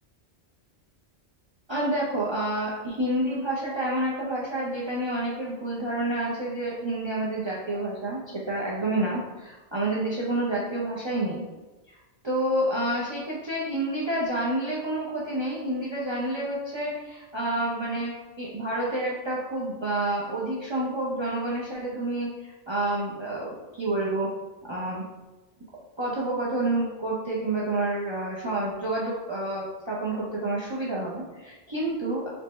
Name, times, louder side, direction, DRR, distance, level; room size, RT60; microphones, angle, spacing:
voice 1, 1.7-11.4 11.9-12.0 12.2-24.3 24.7-25.0 26.0-32.3, right 1 dB, 45° right, -5 dB, 0.3 m, -29 dB
4.3 x 2.1 x 3.1 m, 1.1 s
omnidirectional pair, 1.3 m